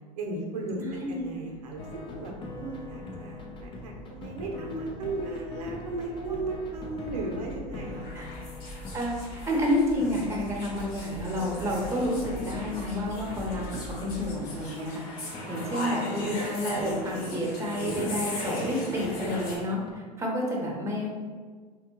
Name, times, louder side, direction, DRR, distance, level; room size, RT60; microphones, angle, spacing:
voice 1, 0.2-1.9 2.2-8.4, right 2 dB, 75° right, 0 dB, 0.7 m, -36 dB
voice 2, 0.8-1.2 6.2-6.3 8.1-8.3 8.9-21.1, left 1 dB, 15° right, -2 dB, 0.8 m, -30 dB
sound 1, 1.1-14.3, left 1 dB, 75° left, 1.0 m, -45 dB
sound 2, 1.8-19.9, left 1 dB, 25° left, 0.5 m, -43 dB
sound 3, 7.9-19.6, left 1 dB, 50° left, 1.0 m, -38 dB
3.5 x 2.1 x 3.0 m, 1.6 s
hypercardioid pair, 90°, 20 cm